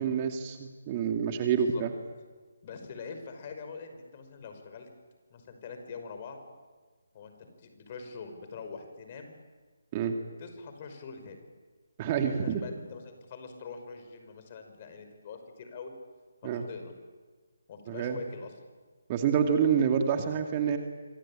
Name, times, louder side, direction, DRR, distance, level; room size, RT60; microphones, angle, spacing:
voice 1, 0.0-1.9 9.9-10.2 12.0-12.6 16.4-16.7 17.9-18.2 19.1-20.8, right 7 dB, 25° right, 5 dB, 2.3 m, -27 dB
voice 2, 1.4-1.8 2.6-4.9 5.3-6.4 7.1-9.3 10.4-11.4 12.2-15.9 16.4-16.9 17.7-18.6, left 5 dB, 35° left, 6 dB, 5.7 m, -44 dB
26.5 x 25.0 x 8.9 m, 1.4 s
figure-of-eight pair, 150°, 0 cm